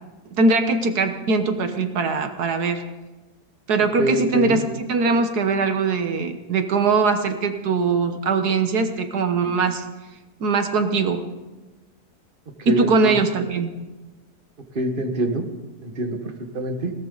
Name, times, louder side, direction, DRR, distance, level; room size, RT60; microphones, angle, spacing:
voice 1, 0.3-2.8 3.7-4.6 4.9-9.9 10.4-11.2 12.7-13.7, right 4 dB, 75° right, 7 dB, 1.6 m, -21 dB
voice 2, 4.0-4.6 12.6-13.2 14.8-15.5 15.8-16.2 16.5-16.9, right 1 dB, 35° right, 4 dB, 1.7 m, -24 dB
20.0 x 18.0 x 3.9 m, 1.2 s
omnidirectional pair, 1.7 m